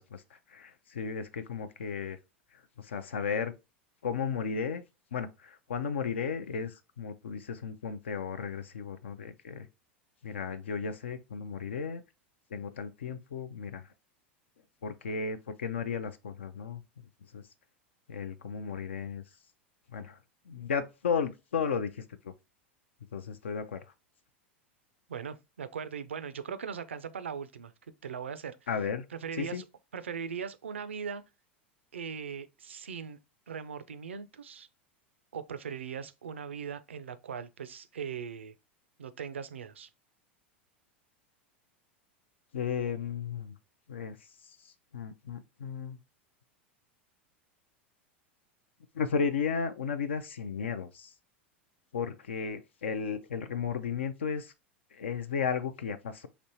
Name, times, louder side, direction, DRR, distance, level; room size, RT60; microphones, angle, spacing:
voice 1, 0.0-2.2 2.5-3.5 4.0-4.8 5.1-9.7 10.2-12.0 12.5-13.9 14.8-16.8 17.3-17.4 18.1-19.2 19.9-20.2 20.5-22.3 23.1-23.8 28.7-29.1 29.3-29.6 42.5-43.5 43.9-46.0 48.9-51.1 51.9-54.5 54.9-56.3, left 6 dB, 75° left, 0.4 m, -34 dB
voice 2, 25.1-28.6 29.1-29.6 29.9-31.2 31.9-33.2 33.5-34.7 35.3-38.5 39.0-39.9, right 7 dB, 80° right, 0.4 m, -39 dB
4.2 x 2.9 x 2.7 m
figure-of-eight pair, 85°, 6 cm